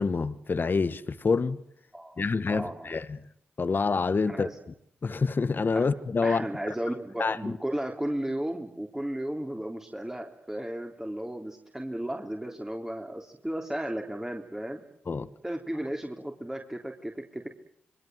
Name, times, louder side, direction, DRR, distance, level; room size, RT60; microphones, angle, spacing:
voice 1, 0.0-1.6 2.2-3.2 3.6-4.5 5.0-6.4 7.2-7.6 15.1-15.3, left 4 dB, 50° left, 1.5 m, -27 dB
voice 2, 1.9-2.9 4.3-4.6 5.8-5.9 6.2-14.8 15.4-17.5, right 1 dB, 10° right, 3.6 m, -34 dB
26.5 x 22.0 x 7.9 m
supercardioid pair, 45°, 4 cm